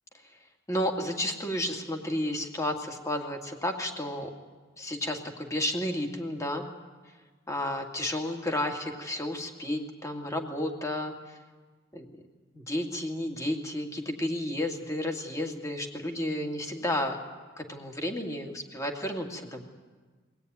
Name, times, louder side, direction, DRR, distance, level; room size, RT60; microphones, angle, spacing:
voice 1, 0.7-4.3 4.8-6.6 7.5-11.4 11.9-12.1 12.5-17.2 17.6-19.6, left 1 dB, 15° left, 2 dB, 2.4 m, -32 dB
22.5 x 17.5 x 9.7 m, 1.4 s
head